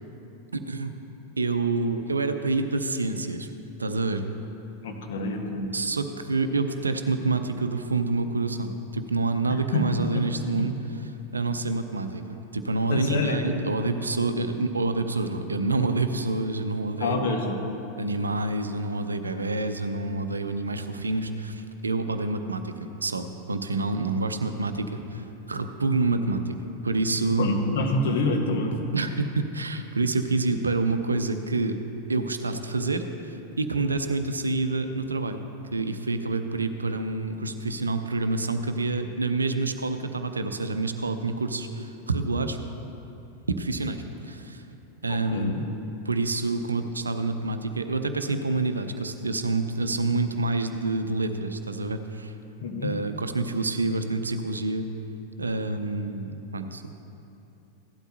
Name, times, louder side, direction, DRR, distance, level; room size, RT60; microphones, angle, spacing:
voice 1, 0.5-1.0 1.4-3.5 3.8-4.2 5.7-10.7 11.3-17.4 18.0-26.6 26.8-27.6 28.9-31.8 32.1-35.4 35.7-42.6 43.5-44.6 45.0-45.6 46.0-52.3 52.8-54.9 55.4-56.9, right 3 dB, 75° right, 8 dB, 0.6 m, -27 dB
voice 2, 4.8-5.7 9.5-9.8 10.1-10.6 12.9-13.4 17.0-17.6 24.7-24.9 27.4-28.8 45.1-45.6 52.6-52.9, left 2 dB, 55° left, 2 dB, 1.3 m, -27 dB
15.5 x 11.5 x 2.8 m, 2.9 s
figure-of-eight pair, 90°, 0 cm